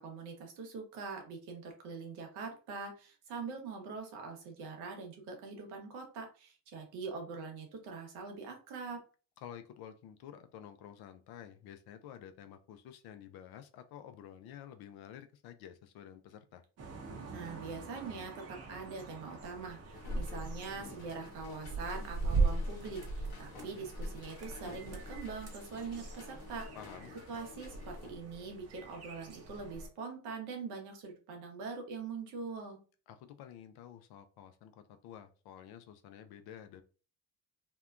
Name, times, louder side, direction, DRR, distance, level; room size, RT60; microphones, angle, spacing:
voice 1, 0.0-9.0 17.3-26.7 27.3-32.8, right 4 dB, 85° right, 3 dB, 0.9 m, -43 dB
voice 2, 9.4-16.6 26.7-27.1 33.1-36.8, left 9 dB, 70° left, 9 dB, 0.5 m, -51 dB
sound 1, 16.8-29.9, right 3 dB, 40° right, 0.7 m, -39 dB
sound 2, 19.9-28.1, left 4 dB, 90° left, 0.9 m, -53 dB
2.7 x 2.2 x 2.3 m, 0.37 s
supercardioid pair, 65°, 39 cm